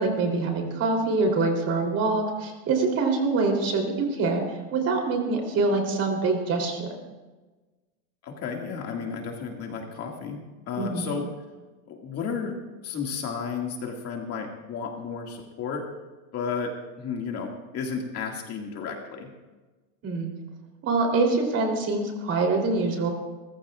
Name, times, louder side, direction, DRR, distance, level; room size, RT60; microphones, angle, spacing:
voice 1, 0.0-4.4 4.7-6.9 10.8-11.1 20.0-20.3 20.8-23.1, right 3 dB, 35° right, 2 dB, 3.4 m, -25 dB
voice 2, 8.2-10.4 10.7-11.3 11.9-12.6 12.8-15.9 16.3-19.3, left 5 dB, 35° left, 1 dB, 2.1 m, -33 dB
28.5 x 15.0 x 2.5 m, 1.2 s
supercardioid pair, 150°, 43 cm